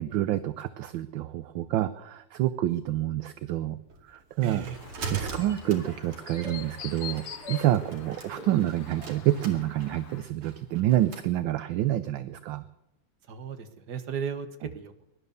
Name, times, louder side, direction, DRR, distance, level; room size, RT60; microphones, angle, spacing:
voice 1, 0.0-3.8 4.0-4.7 5.1-7.2 7.5-12.6, right 13 dB, 70° right, 14 dB, 1.3 m, -28 dB
sound 1, 3.8-3.9 5.2-9.2, left 1 dB, ahead, 7.1 m, -46 dB
sound 2, 3.9-11.3, right 4 dB, 85° right, 3.2 m, -42 dB
voice 2, 4.4-4.8 13.3-15.0, right 7 dB, 50° right, 10 dB, 1.8 m, -35 dB
Chirp tweet, 4.7-10.2, left 11 dB, 85° left, 1.9 m, -45 dB
18.0 x 11.5 x 6.7 m, 0.93 s
omnidirectional pair, 2.4 m